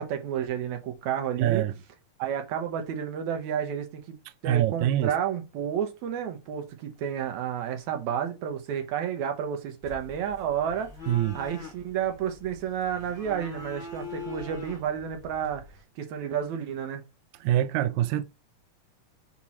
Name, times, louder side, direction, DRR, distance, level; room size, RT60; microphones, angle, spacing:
voice 1, 0.0-1.7 2.2-4.2 4.4-10.9 11.3-15.6 16.0-17.0, right 8 dB, 70° right, 2.3 m, -31 dB
voice 2, 1.4-1.7 4.4-5.1 11.1-11.4 17.4-18.2, right 12 dB, 85° right, 1.6 m, -24 dB
sound 1, 9.8-15.8, left 4 dB, 60° left, 0.7 m, -43 dB
5.7 x 4.6 x 4.3 m
omnidirectional pair, 3.8 m